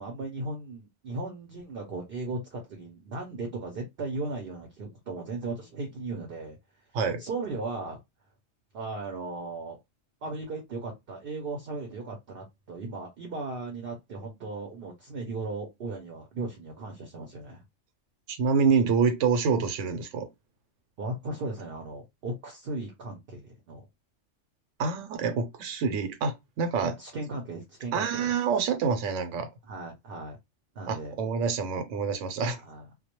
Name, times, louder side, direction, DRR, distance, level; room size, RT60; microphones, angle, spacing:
voice 1, 0.0-6.6 7.2-8.0 8.7-9.8 10.2-17.6 21.0-23.9 26.8-28.3 29.7-30.4 30.8-31.2 32.7-32.8, right 2 dB, 60° right, 0.7 m, -36 dB
voice 2, 18.3-20.3 24.8-26.9 27.9-29.5 30.9-32.6, right 5 dB, 80° right, 0.9 m, -27 dB
2.2 x 2.1 x 2.8 m
omnidirectional pair, 1.3 m